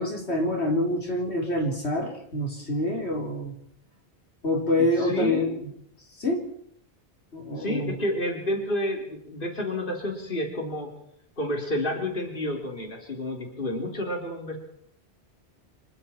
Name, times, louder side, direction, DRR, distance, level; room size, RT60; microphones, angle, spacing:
voice 1, 0.0-3.5 4.4-5.7 6.2-6.4 7.3-8.0, left 1 dB, 85° left, 1 dB, 4.0 m, -26 dB
voice 2, 4.8-5.6 7.6-10.9 11.4-14.6, left 1 dB, 55° left, 2 dB, 3.7 m, -30 dB
26.0 x 23.0 x 4.4 m, 0.69 s
omnidirectional pair, 1.1 m